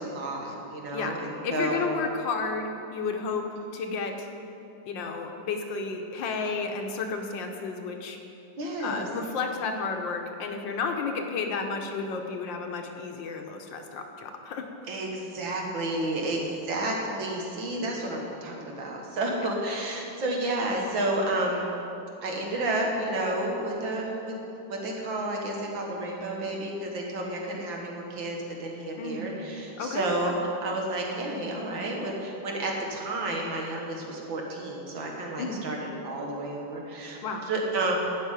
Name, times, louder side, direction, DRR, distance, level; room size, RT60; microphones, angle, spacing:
voice 1, 0.0-1.8 8.6-9.1 14.9-21.7 22.2-24.3 24.7-37.2 37.5-38.0, right 1 dB, 80° right, -1 dB, 2.4 m, -31 dB
voice 2, 1.4-4.3 4.8-8.2 8.8-14.7 29.0-29.3 29.8-30.4 35.4-35.6 37.2-37.5, left 4 dB, 80° left, 4 dB, 1.7 m, -32 dB
11.5 x 5.9 x 9.0 m, 2.9 s
omnidirectional pair, 2.0 m